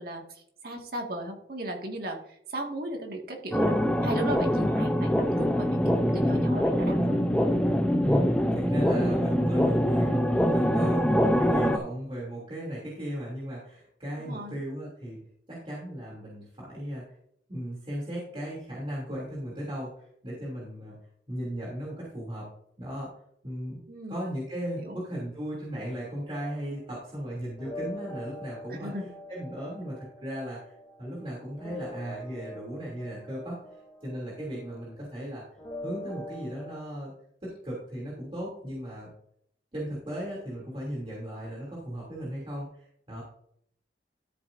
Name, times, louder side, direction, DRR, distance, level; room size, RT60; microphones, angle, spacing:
voice 1, 0.0-7.2 14.3-14.6 23.9-24.3 24.8-25.0 28.7-29.1, right 1 dB, 60° right, 2 dB, 2.0 m, -37 dB
sound 1, 3.5-11.8, equal, 5° left, 0.6 m, -24 dB
voice 2, 8.0-15.2 15.5-17.2 17.5-21.0 21.3-22.5 22.8-23.1 23.4-28.9 29.3-30.7 31.0-33.6 34.0-35.4 35.8-37.1 37.4-39.1 39.7-43.2, equal, 30° right, -6 dB, 2.9 m, -36 dB
sound 2, 26.3-36.8, left 1 dB, 20° left, 2.4 m, -44 dB
13.0 x 7.7 x 2.7 m, 0.67 s
head